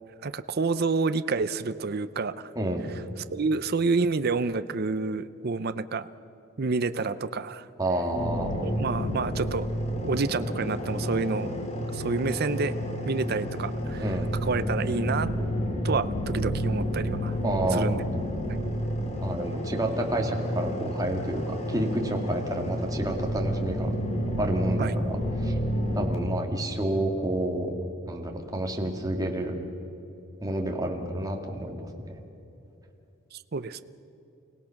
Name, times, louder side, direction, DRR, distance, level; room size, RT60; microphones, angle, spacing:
voice 1, 0.2-2.5 3.3-6.1 6.6-7.7 8.6-9.7 10.0-11.5 11.9-12.7 13.0-15.3 15.8-17.4 17.7-18.0 24.8-25.0 33.3-33.8, right 4 dB, 50° right, 12 dB, 0.6 m, -28 dB
voice 2, 7.8-8.5 14.0-14.3 17.4-18.0 19.2-23.9 24.4-25.5 25.9-27.7 28.1-29.6 30.4-32.1, right 1 dB, 15° right, 2 dB, 2.1 m, -29 dB
sound 1, 8.1-26.2, equal, 30° left, 2.5 m, -30 dB
30.0 x 17.5 x 5.9 m, 2.9 s
head